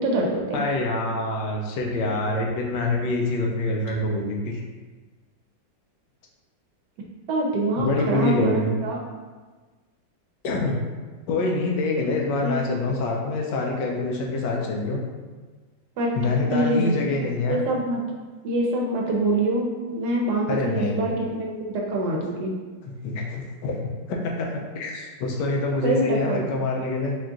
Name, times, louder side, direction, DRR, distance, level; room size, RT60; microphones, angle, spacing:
voice 1, 0.0-0.7 7.3-9.0 12.4-12.6 16.0-16.2 16.5-16.9 17.5-18.0 18.4-22.5 25.8-26.5, right 1 dB, 70° right, -1 dB, 1.2 m, -25 dB
voice 2, 0.5-4.6 7.8-8.8 10.4-10.8 11.3-15.0 16.1-17.6 20.5-21.1 22.8-27.2, left 2 dB, 75° left, 0 dB, 1.2 m, -26 dB
4.4 x 2.4 x 3.6 m, 1.3 s
omnidirectional pair, 2.0 m